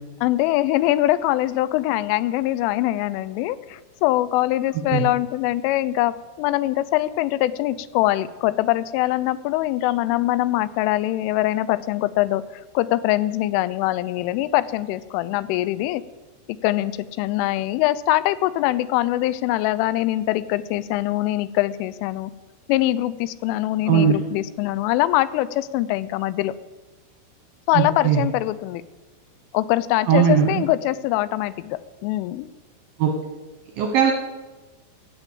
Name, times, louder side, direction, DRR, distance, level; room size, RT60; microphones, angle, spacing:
voice 1, 0.2-16.0 16.6-16.9 17.2-22.3 22.7-26.5 27.7-28.8 29.5-32.5, left 16 dB, 90° left, 16 dB, 3.1 m, -23 dB
voice 2, 27.7-28.2 30.1-30.7 33.0-33.1 33.8-34.1, right 8 dB, 70° right, 2 dB, 2.2 m, -18 dB
16.5 x 6.7 x 8.6 m, 1.2 s
omnidirectional pair, 5.6 m